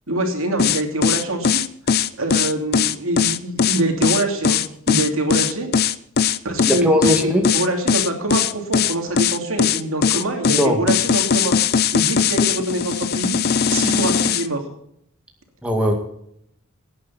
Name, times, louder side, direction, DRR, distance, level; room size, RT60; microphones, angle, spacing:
voice 1, 0.1-1.6 2.2-4.6 4.9-5.7 6.4-11.6 11.9-13.4 13.7-14.6, right 1 dB, 75° right, 3 dB, 2.9 m, -24 dB
sound 1, 0.6-14.5, left 7 dB, 45° left, 0.6 m, -19 dB
voice 2, 6.6-7.5 10.5-10.8 15.6-15.9, equal, 5° right, 1 dB, 2.1 m, -19 dB
18.5 x 9.8 x 4.2 m, 0.72 s
head